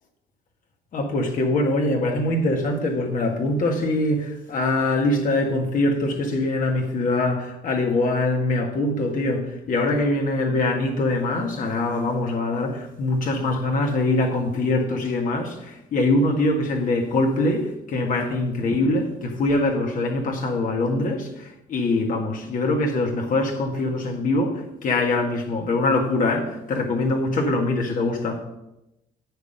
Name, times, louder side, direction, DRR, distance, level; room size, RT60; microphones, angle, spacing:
voice 1, 0.9-28.4, left 2 dB, 50° left, 1.9 m, -23 dB
8.6 x 6.6 x 5.2 m
cardioid pair, 110°, 17 cm